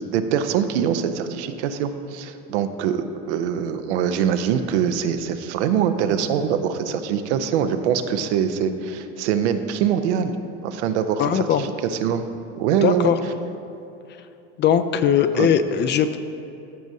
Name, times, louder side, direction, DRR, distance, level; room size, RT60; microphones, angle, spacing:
voice 1, 0.0-10.3 10.6-12.3 12.6-13.1 15.3-15.5, right 8 dB, 75° right, 9 dB, 0.7 m, -23 dB
voice 2, 11.2-11.6 12.8-13.2 14.6-16.2, left 8 dB, 35° left, 11 dB, 0.4 m, -19 dB
14.0 x 6.2 x 2.7 m, 2.9 s
hypercardioid pair, 85°, 34 cm